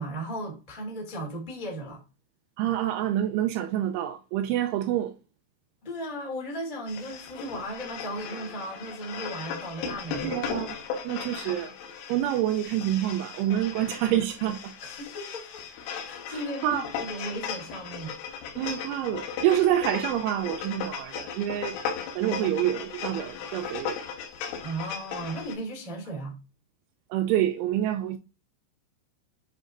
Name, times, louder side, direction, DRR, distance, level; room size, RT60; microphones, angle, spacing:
voice 1, 0.0-2.0 5.8-10.4 14.8-15.6 16.0-18.1 24.6-26.3, right 1 dB, 20° left, 1.1 m, -36 dB
voice 2, 2.6-5.1 10.2-10.8 11.0-11.7 12.1-14.7 16.3-16.8 18.6-21.8 22.2-24.0 27.1-28.2, right 12 dB, 85° right, 3.0 m, -27 dB
sound 1, 6.9-25.5, left 7 dB, 85° left, 3.9 m, -37 dB
10.0 x 4.9 x 2.5 m
omnidirectional pair, 5.6 m